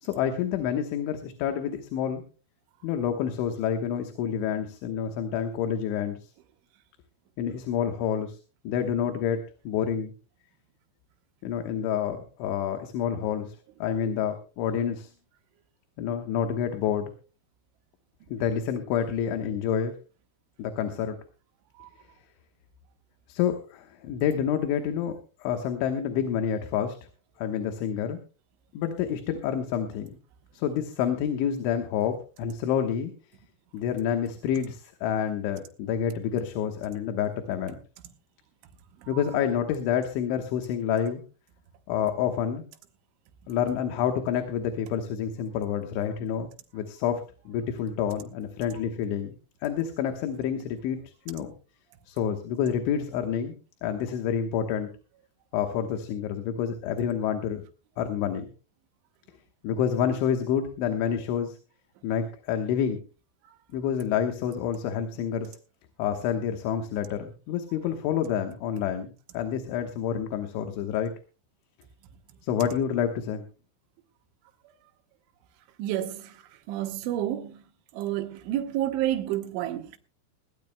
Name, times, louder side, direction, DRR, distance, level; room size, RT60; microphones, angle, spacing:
voice 1, 0.0-2.2 2.8-6.3 7.4-8.4 8.7-9.4 9.7-10.1 11.4-15.1 16.0-17.1 18.3-19.9 20.6-21.2 23.3-25.2 25.4-27.0 27.4-28.2 28.7-30.2 30.5-33.1 33.7-37.8 39.1-41.2 41.9-42.6 43.5-49.4 49.6-51.0 51.3-51.5 52.1-53.5 53.8-54.9 55.5-57.6 58.0-58.5 59.6-61.6 62.0-63.0 63.7-65.6 66.0-71.1 72.4-73.4, left 8 dB, 80° left, 3.5 m, -28 dB
voice 2, 75.8-76.4 76.7-77.6 77.9-80.0, right 12 dB, 80° right, 3.6 m, -30 dB
20.0 x 17.0 x 2.2 m
omnidirectional pair, 5.5 m